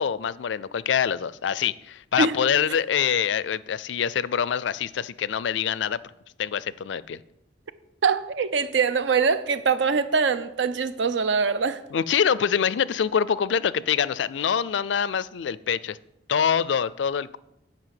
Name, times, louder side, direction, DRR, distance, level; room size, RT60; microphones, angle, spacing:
voice 1, 0.0-6.0 6.4-7.2 11.9-16.0 16.3-17.4, left 7 dB, 80° left, 0.4 m, -25 dB
voice 2, 8.0-11.8, right 5 dB, 80° right, 0.6 m, -23 dB
8.9 x 5.3 x 7.6 m
head